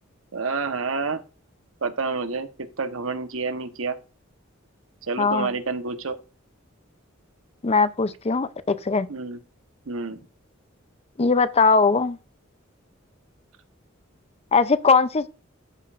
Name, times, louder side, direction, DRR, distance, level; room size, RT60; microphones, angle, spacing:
voice 1, 0.3-1.2 1.8-2.5 2.8-4.0 5.1-6.2 9.1-9.4 9.9-10.2, right 4 dB, 90° right, 1.1 m, -28 dB
voice 2, 5.2-5.5 7.6-9.1 11.2-12.2 14.5-15.3, left 4 dB, 30° left, 0.5 m, -20 dB
13.0 x 5.4 x 2.5 m
head